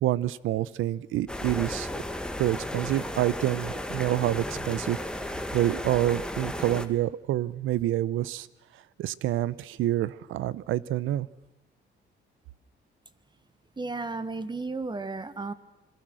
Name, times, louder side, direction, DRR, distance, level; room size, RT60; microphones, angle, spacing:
voice 1, 0.0-1.9 2.4-8.5 9.0-11.3, right 14 dB, 85° right, 19 dB, 0.8 m, -27 dB
sound 1, 1.3-6.9, left 1 dB, 5° left, 1.9 m, -34 dB
voice 2, 13.8-15.5, right 3 dB, 20° right, 13 dB, 1.5 m, -33 dB
27.0 x 22.0 x 6.4 m, 0.97 s
cardioid pair, 90°, 20 cm